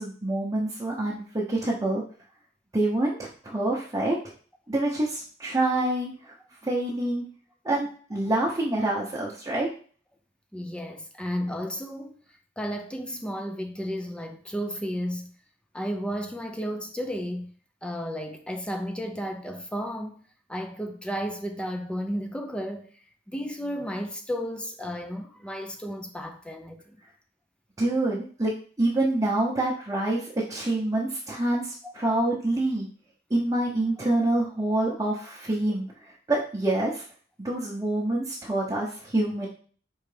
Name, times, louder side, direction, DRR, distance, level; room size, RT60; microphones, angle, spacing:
voice 1, 0.0-2.0 2.7-4.2 4.7-6.3 6.6-7.2 7.6-9.7 27.8-32.9 33.3-37.0 37.4-39.5, right 2 dB, 20° right, 0.7 m, -26 dB
voice 2, 10.5-12.2 12.6-15.3 15.7-17.5 17.8-20.2 20.5-22.9 23.3-27.0 31.8-31.9, equal, 5° left, 0.3 m, -33 dB
4.5 x 3.1 x 3.3 m
head